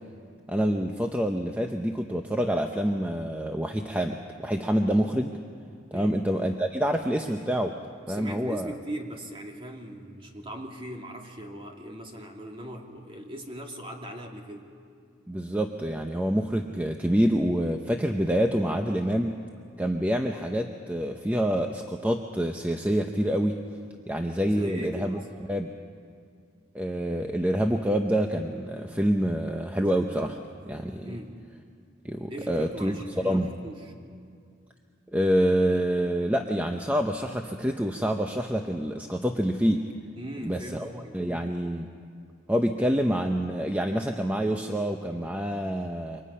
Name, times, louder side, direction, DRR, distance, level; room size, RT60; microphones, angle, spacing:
voice 1, 0.5-5.3 5.9-7.7 8.1-8.7 15.3-19.3 19.8-23.6 24.1-25.2 25.5-25.7 26.7-30.4 30.7-31.1 32.0-32.9 33.2-33.5 35.1-39.9 40.4-41.9 42.5-46.2, equal, 10° right, 4 dB, 0.8 m, -27 dB
voice 2, 8.1-14.7 24.5-25.3 31.0-31.4 32.3-33.9 40.2-41.2, right 1 dB, 30° right, 1 dB, 2.4 m, -39 dB
28.0 x 24.5 x 5.6 m, 2.4 s
head